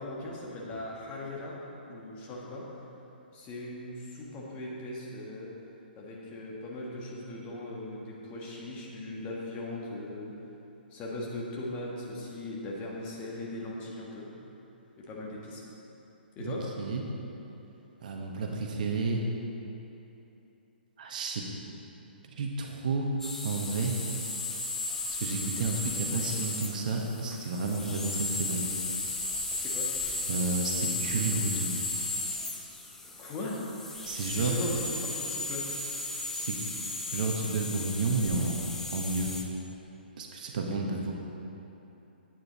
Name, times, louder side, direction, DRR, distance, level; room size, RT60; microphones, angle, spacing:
voice 1, 0.0-1.6 1.9-2.6 3.3-5.5 6.0-10.3 10.9-14.3 15.0-15.6 16.3-16.6 29.5-29.9 33.2-33.6 34.3-35.9 40.6-40.7, left 1 dB, 25° left, -4 dB, 1.7 m, -39 dB
voice 2, 16.4-17.0 18.0-19.2 21.0-21.5 22.3-23.1 23.4-24.0 25.1-28.7 30.3-31.7 34.0-34.5 36.3-36.6 37.1-38.6 38.9-39.3 40.2-41.1, right 3 dB, 50° right, 1 dB, 1.2 m, -31 dB
sound 1, 23.2-39.4, left 2 dB, 5° left, 0.7 m, -35 dB
9.6 x 9.2 x 4.1 m, 3.0 s
figure-of-eight pair, 125°, 6 cm